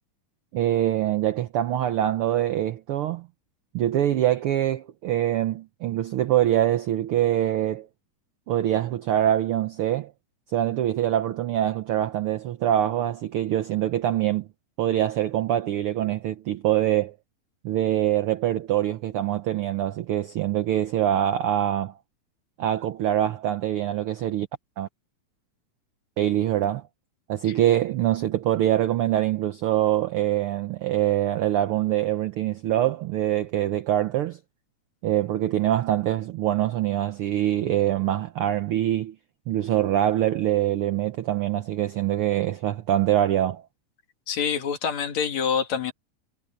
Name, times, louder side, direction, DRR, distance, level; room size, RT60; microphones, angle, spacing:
voice 1, 0.5-3.3 3.7-7.9 8.5-10.1 10.5-14.5 14.8-17.1 17.6-22.0 22.6-24.5 24.8-24.9 26.2-26.8 27.3-34.4 35.0-39.2 39.5-43.6, right 12 dB, 90° right, 1.2 m, -24 dB
voice 2, 44.3-45.9, left 7 dB, 65° left, 3.2 m, -26 dB
omnidirectional pair, 3.5 m